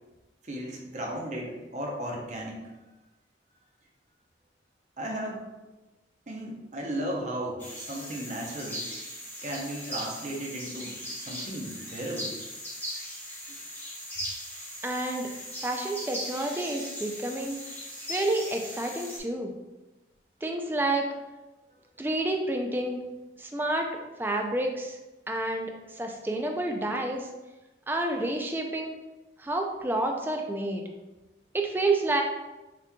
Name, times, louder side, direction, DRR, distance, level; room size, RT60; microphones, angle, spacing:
voice 1, 0.4-2.7 5.0-5.5 6.3-8.9 9.4-12.3, right 1 dB, 40° right, 0 dB, 0.7 m, -35 dB
sound 1, 7.6-19.2, equal, 10° left, 0.9 m, -39 dB
voice 2, 14.8-15.3 15.6-17.6 18.1-19.5 20.4-21.1 22.0-23.0 23.4-25.0 25.3-27.3 27.9-28.9 29.4-30.8 31.5-32.2, right 2 dB, 10° right, 2 dB, 0.4 m, -29 dB
5.8 x 3.0 x 2.3 m, 1.1 s
head